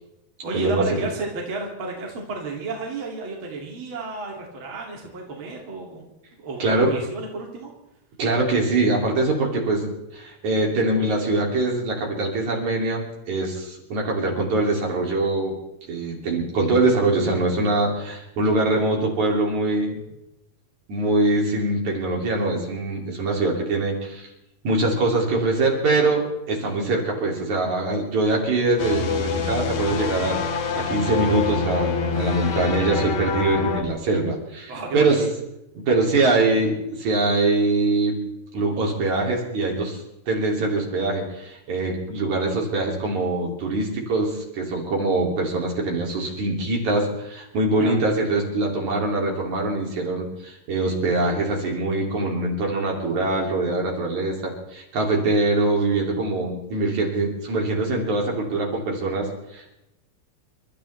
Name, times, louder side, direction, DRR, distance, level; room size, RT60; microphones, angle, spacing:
voice 1, 0.4-6.1 6.4-7.7 34.7-35.3 47.8-47.9, right 3 dB, 40° right, -1 dB, 3.0 m, -32 dB
voice 2, 6.6-6.9 8.2-15.5 15.9-20.0 20.9-24.3 24.6-30.4 30.8-35.2 35.8-38.2 38.5-59.8, right 2 dB, 55° right, -1 dB, 4.0 m, -23 dB
sound 1, 28.8-33.8, left 5 dB, 65° left, 2.5 m, -25 dB
29.0 x 13.0 x 3.3 m, 0.89 s
omnidirectional pair, 4.0 m